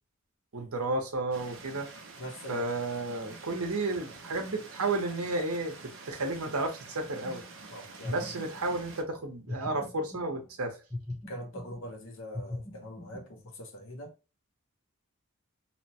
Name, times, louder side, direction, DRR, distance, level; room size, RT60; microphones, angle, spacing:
voice 1, 0.5-1.9 2.5-5.7 6.1-7.4 8.1-10.8, right 2 dB, 90° right, 0.8 m, -32 dB
sound 1, 1.3-9.0, right 4 dB, 60° right, 0.6 m, -48 dB
voice 2, 2.2-2.7 7.7-8.3 11.3-14.1, equal, 65° left, 0.7 m, -43 dB
sound 2, 7.0-7.6 8.0-9.1 9.5-10.5 10.9-11.9 12.3-13.4, left 2 dB, 10° left, 0.6 m, -41 dB
3.0 x 2.1 x 2.8 m
head